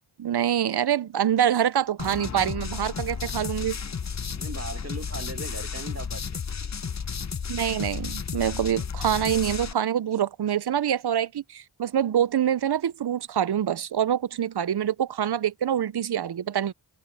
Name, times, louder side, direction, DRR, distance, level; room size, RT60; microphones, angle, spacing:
voice 1, 0.2-3.8 7.5-16.7, right 9 dB, 55° right, 0.6 m, -25 dB
sound 1, 2.0-9.7, left 6 dB, 35° left, 0.7 m, -33 dB
voice 2, 4.3-6.4, right 2 dB, 30° right, 1.8 m, -38 dB
cardioid pair, 50°, 48 cm